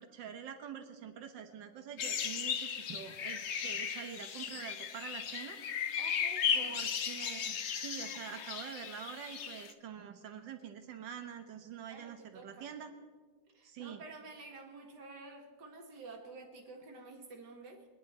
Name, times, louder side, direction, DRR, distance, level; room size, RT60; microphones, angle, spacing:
voice 1, 0.0-5.6 6.5-12.9 13.6-14.0, right 8 dB, 90° right, 7 dB, 1.9 m, -46 dB
sound 1, 2.0-9.7, left 7 dB, 60° left, 0.7 m, -36 dB
voice 2, 6.0-6.8 11.9-12.7 13.5-17.9, right 3 dB, 70° right, 2 dB, 2.3 m, -50 dB
22.0 x 10.0 x 4.3 m, 1.4 s
omnidirectional pair, 1.9 m